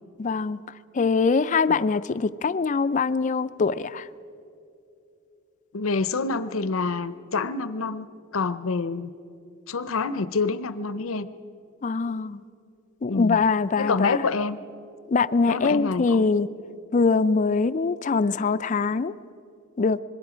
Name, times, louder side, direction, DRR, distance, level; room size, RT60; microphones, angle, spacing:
voice 1, 0.2-0.6 0.9-4.0 11.8-12.4 13.0-14.2 15.1-16.5 16.9-19.1 19.8-20.0, left 4 dB, 35° left, 15 dB, 0.4 m, -23 dB
voice 2, 5.7-8.1 8.3-9.1 9.7-11.3 13.1-13.4 13.8-14.6 15.5-16.3, left 4 dB, 75° left, 14 dB, 0.7 m, -27 dB
25.5 x 21.0 x 5.0 m, 2.7 s
head